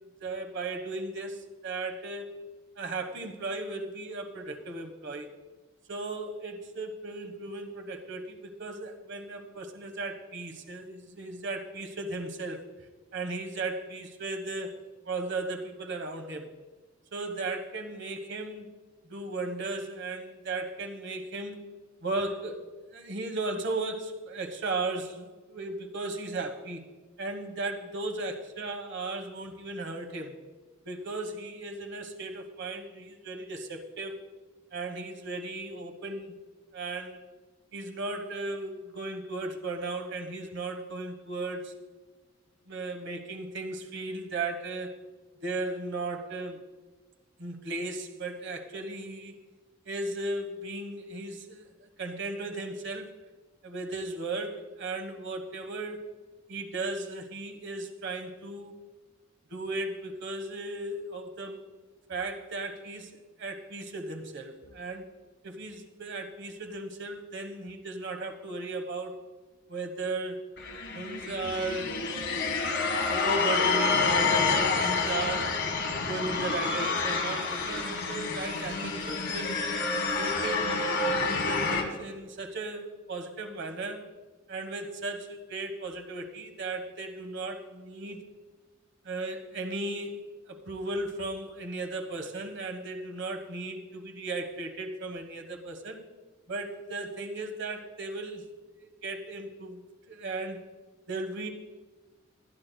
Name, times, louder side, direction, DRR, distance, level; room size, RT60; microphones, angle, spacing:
voice 1, 0.2-2.3 2.8-5.3 5.9-12.6 13.1-14.7 15.1-16.5 17.1-18.7 19.1-21.6 22.0-22.6 22.9-26.9 27.2-30.4 30.8-34.2 34.7-36.3 36.7-37.2 37.7-41.7 42.7-44.9 45.4-46.6 47.4-49.3 49.8-53.1 53.6-56.0 56.5-58.7 59.5-61.6 62.1-63.1 63.4-65.1 65.4-69.2 69.7-70.4 70.9-72.0 72.7-75.5 76.1-79.6 80.1-84.0 84.5-88.2 89.0-90.1 90.5-96.0 96.5-98.4 98.8-99.8 100.1-100.6 101.1-101.5, right 2 dB, 60° right, 6 dB, 1.3 m, -36 dB
sound 1, 70.6-81.8, left 4 dB, 60° left, 1.4 m, -28 dB
21.0 x 9.8 x 2.3 m, 1.2 s
head